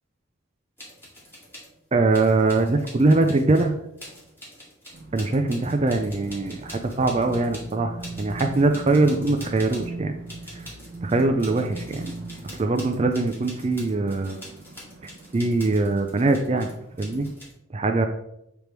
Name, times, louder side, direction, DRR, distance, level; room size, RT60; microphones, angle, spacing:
sound 1, 0.8-1.7 2.1-10.0 10.3-17.5, equal, 10° left, 2.4 m, -45 dB
voice 1, 1.9-3.7 5.1-10.2 10.5-10.6 11.0-12.1 12.6-14.4 15.3-16.7 17.0-17.3 17.7-18.1, right 2 dB, 30° right, 5 dB, 0.4 m, -22 dB
sound 2, 4.9-17.3, right 2 dB, 55° right, 0.9 m, -40 dB
8.1 x 3.5 x 4.5 m, 0.81 s
head